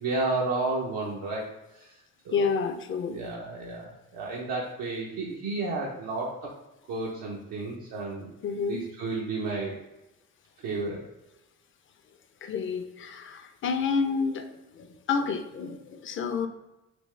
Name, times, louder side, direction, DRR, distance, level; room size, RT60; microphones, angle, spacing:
voice 1, 0.0-1.9 2.2-2.5 3.1-6.5 6.9-8.3 8.7-9.8 10.6-11.0, right 3 dB, 85° right, -3 dB, 0.7 m, -32 dB
voice 2, 2.3-3.2 8.4-8.9 12.4-16.5, left 5 dB, 40° left, 7 dB, 0.4 m, -29 dB
3.5 x 2.8 x 3.1 m, 0.96 s
cardioid pair, 90°, 30 cm